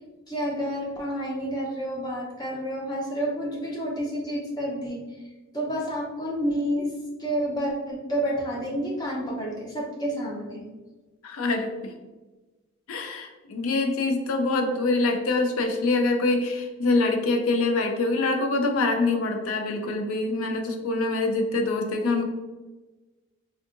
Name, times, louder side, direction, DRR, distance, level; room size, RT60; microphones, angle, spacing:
voice 1, 0.3-5.2 5.5-6.9 7.2-10.6, equal, 20° left, -3 dB, 0.6 m, -29 dB
voice 2, 11.2-11.9 12.9-22.3, left 3 dB, 70° left, 4 dB, 0.4 m, -25 dB
3.4 x 2.7 x 2.4 m, 1.2 s
head